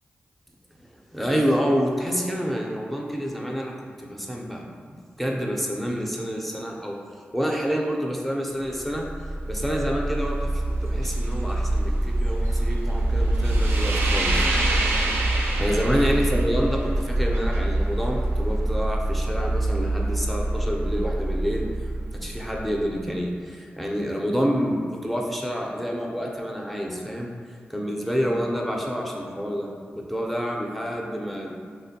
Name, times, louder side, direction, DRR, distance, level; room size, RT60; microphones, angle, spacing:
voice 1, 1.1-7.0 7.3-9.0 9.5-10.5 10.8-14.5 15.6-21.7 22.1-27.3 27.7-29.7 29.9-31.5, equal, ahead, -1 dB, 0.4 m, -28 dB
sound 1, 8.8-23.0, right 1 dB, 90° right, 0.4 m, -25 dB
3.1 x 2.5 x 2.7 m, 2.1 s
cardioid pair, 55°, 4 cm